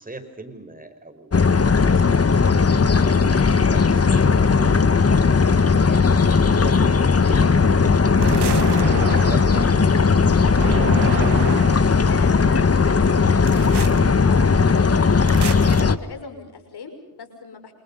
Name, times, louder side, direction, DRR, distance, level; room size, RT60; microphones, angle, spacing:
voice 1, 0.0-6.1 6.4-10.1, right 2 dB, 20° right, 7 dB, 5.6 m, -41 dB
sound 1, 1.3-16.0, left 5 dB, 35° left, 1.6 m, -17 dB
sound 2, 8.2-9.7 10.6-12.0 13.5-14.0 15.3-15.8, right 10 dB, 85° right, 1.1 m, -30 dB
voice 2, 10.8-17.7, left 5 dB, 75° left, 8 dB, 6.3 m, -39 dB
28.0 x 27.5 x 5.6 m, 0.84 s
cardioid pair, 65°, 39 cm